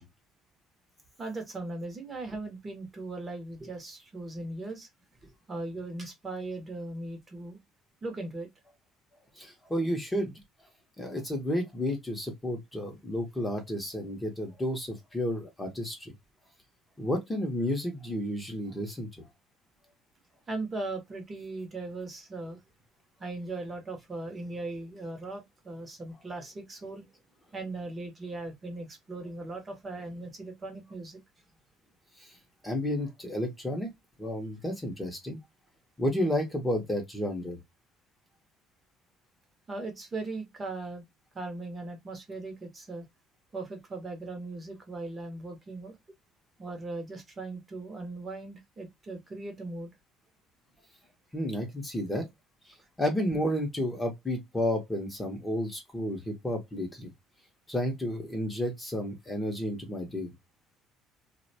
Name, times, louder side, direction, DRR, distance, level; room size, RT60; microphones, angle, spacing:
voice 1, 1.2-4.9 5.2-7.6 8.0-8.5 20.5-22.6 23.2-27.1 27.5-31.2 39.7-41.0 41.3-43.1 43.5-46.0 46.6-49.9, right 2 dB, 20° right, 0.7 m, -38 dB
voice 2, 9.4-10.3 11.0-16.1 17.0-19.3 32.2-32.3 32.6-33.9 34.2-35.4 36.0-37.6 51.3-52.3 53.0-57.1 57.7-60.3, left 1 dB, 10° left, 0.7 m, -31 dB
2.5 x 2.1 x 2.6 m
cardioid pair, 155°, 0 cm